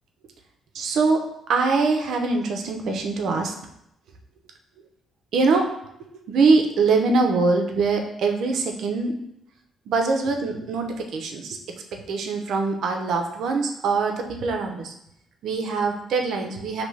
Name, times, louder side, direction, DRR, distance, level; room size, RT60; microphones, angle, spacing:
voice 1, 0.8-1.2 1.5-3.5 5.3-5.7 6.3-9.1 9.9-11.6 12.1-14.9 15.4-16.8, right 4 dB, 75° right, 3 dB, 0.7 m, -23 dB
5.4 x 2.9 x 3.2 m, 0.80 s
cardioid pair, 90°, 0 cm